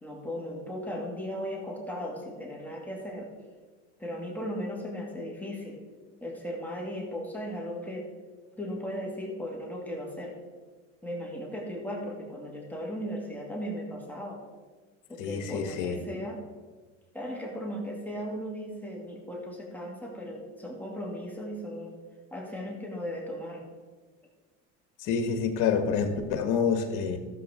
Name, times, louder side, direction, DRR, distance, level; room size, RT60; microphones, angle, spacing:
voice 1, 0.0-3.3 4.0-5.8 6.2-8.1 8.6-10.3 11.0-14.4 15.1-16.4 17.1-21.9 22.3-23.6, equal, 5° left, -3 dB, 2.3 m, -36 dB
voice 2, 15.2-16.0 25.0-27.2, left 6 dB, 65° left, 7 dB, 1.5 m, -27 dB
14.0 x 7.6 x 3.7 m, 1.4 s
supercardioid pair, 105°, 35 cm